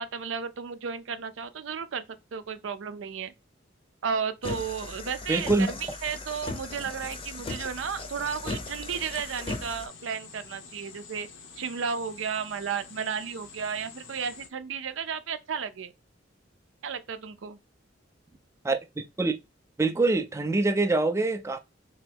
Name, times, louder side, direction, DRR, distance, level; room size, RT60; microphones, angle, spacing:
voice 1, 0.0-2.0 2.3-3.3 4.0-11.3 11.6-15.9 16.8-17.6, right 6 dB, 90° right, 0.5 m, -33 dB
sound 1, 4.4-9.9, left 2 dB, 30° left, 0.6 m, -37 dB
voice 2, 5.3-5.7 18.6-18.8 19.2-19.3 19.8-21.6, right 3 dB, 15° right, 0.3 m, -24 dB
sound 2, 7.0-14.5, left 5 dB, 85° left, 0.9 m, -48 dB
3.4 x 3.0 x 3.4 m
head